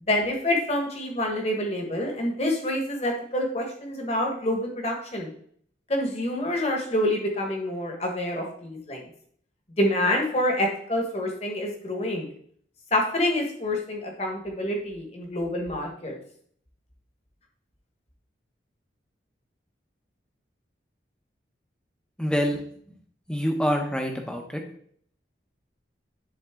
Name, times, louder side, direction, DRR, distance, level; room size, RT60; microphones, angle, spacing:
voice 1, 0.0-5.3 5.9-9.1 9.8-12.3 12.9-16.2, left 1 dB, 35° left, 2 dB, 1.4 m, -27 dB
voice 2, 22.2-22.6 23.3-24.6, equal, 5° left, 3 dB, 0.8 m, -26 dB
10.5 x 3.8 x 3.7 m, 0.62 s
head